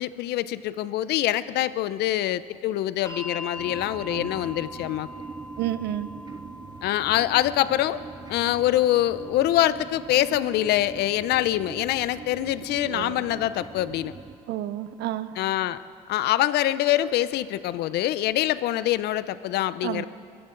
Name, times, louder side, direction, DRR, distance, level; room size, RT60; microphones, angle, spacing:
voice 1, 0.0-5.1 6.8-8.0 8.3-14.1 15.4-15.8 16.1-20.0, left 14 dB, 75° left, 15 dB, 0.6 m, -24 dB
sound 1, 3.0-15.1 16.2-16.3, left 1 dB, 20° left, 3.2 m, -45 dB
sound 2, 3.6-14.4, right 5 dB, 25° right, 0.7 m, -42 dB
voice 2, 5.6-6.1 12.9-13.2 14.5-15.3 19.8-20.1, right 13 dB, 80° right, 13 dB, 0.7 m, -30 dB
22.5 x 15.0 x 3.9 m, 2.2 s
cardioid pair, 110°, 17 cm